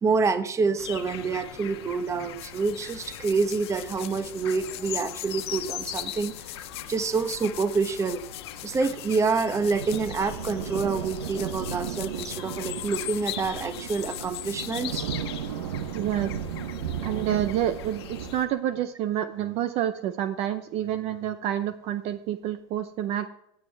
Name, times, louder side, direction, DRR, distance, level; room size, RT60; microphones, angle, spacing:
voice 1, 0.0-8.2 8.6-15.0, right 4 dB, 20° right, 11 dB, 1.0 m, -27 dB
sound 1, 0.8-18.5, left 11 dB, 85° left, 1.4 m, -40 dB
sound 2, 2.1-15.7, left 17 dB, 50° left, 0.6 m, -44 dB
sound 3, 2.2-4.7 4.9-5.0 5.2-7.0 7.3-7.4 7.6-18.4, right 8 dB, 85° right, 0.9 m, -36 dB
voice 2, 15.9-16.3 17.0-23.3, right 11 dB, 50° right, 11 dB, 0.6 m, -28 dB
15.5 x 7.8 x 3.4 m, 0.79 s
supercardioid pair, 110°, 13 cm